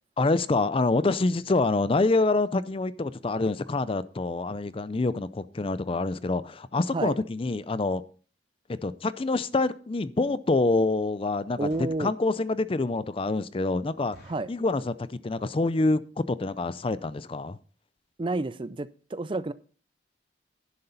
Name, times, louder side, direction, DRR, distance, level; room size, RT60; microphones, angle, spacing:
voice 1, 0.2-8.0 8.8-14.2 14.5-17.6, left 3 dB, 30° left, 0.4 m, -26 dB
voice 2, 11.6-12.1 14.3-14.5 18.2-19.5, right 2 dB, 30° right, 0.4 m, -30 dB
sound 1, 11.7-12.1 12.7-12.8 13.1-13.2 13.5-13.6 14.1-14.6 15.2-15.5 15.8-15.9 16.1-16.4 16.9-17.0 17.2-17.4 17.7-17.8 18.0-18.1, equal, 70° left, 5.8 m, -54 dB
11.0 x 11.0 x 4.0 m
head